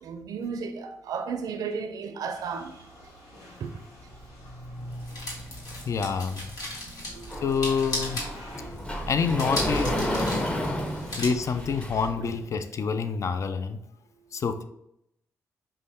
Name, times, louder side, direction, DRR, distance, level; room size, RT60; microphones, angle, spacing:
voice 1, 0.0-2.7 3.6-3.7 7.1-7.7 8.5-8.9, right 5 dB, 70° right, 0.4 m, -35 dB
sound 1, 2.3-12.1, equal, 90° left, 0.9 m, -51 dB
sound 2, 3.8-11.3, left 1 dB, 70° left, 1.5 m, -37 dB
voice 2, 5.9-6.5 7.4-8.3 9.1-10.0 11.2-13.8 14.3-14.6, left 5 dB, 50° left, 0.4 m, -27 dB
Sliding door, 7.3-12.3, equal, 15° left, 0.8 m, -31 dB
5.2 x 2.2 x 3.5 m
supercardioid pair, 55°, 6 cm